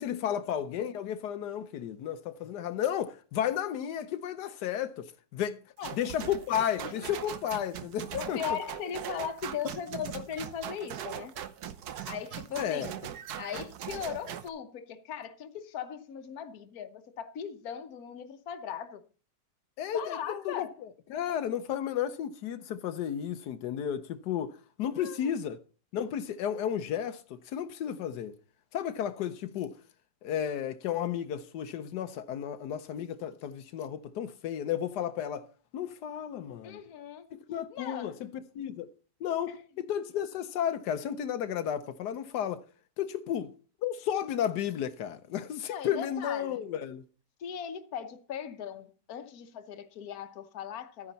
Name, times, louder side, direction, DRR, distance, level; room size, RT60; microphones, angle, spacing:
voice 1, 0.0-5.1 5.3-5.6 5.9-8.6 12.6-12.9 19.8-20.7 21.1-25.6 25.9-28.3 28.7-29.8 30.2-35.5 35.7-36.8 37.3-38.9 39.2-42.6 43.0-43.5 43.8-47.0, left 9 dB, 90° left, 1.3 m, -33 dB
sound 1, 5.8-14.5, right 10 dB, 75° right, 1.4 m, -40 dB
voice 2, 8.1-11.3 12.0-12.9 13.4-19.0 19.9-20.7 24.9-25.3 36.6-37.3 37.7-38.2 39.5-39.6 45.7-46.6 47.4-51.1, left 8 dB, 65° left, 1.4 m, -38 dB
12.5 x 9.7 x 4.0 m
omnidirectional pair, 1.7 m